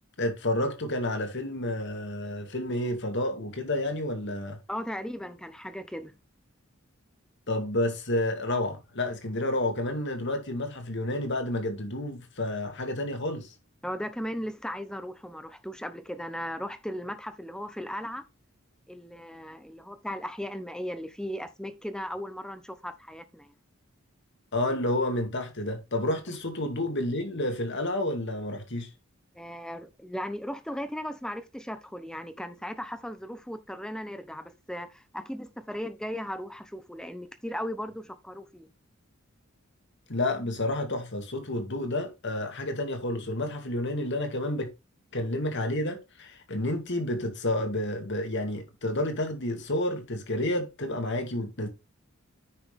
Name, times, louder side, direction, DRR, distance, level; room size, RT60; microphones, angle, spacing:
voice 1, 0.2-4.6 7.5-13.5 24.5-28.9 40.1-44.7 45.1-51.7, left 1 dB, 60° left, 2.3 m, -30 dB
voice 2, 4.7-6.1 13.8-18.2 18.9-23.5 26.3-26.4 29.3-38.7, equal, 5° left, 0.8 m, -37 dB
9.9 x 5.9 x 3.5 m
head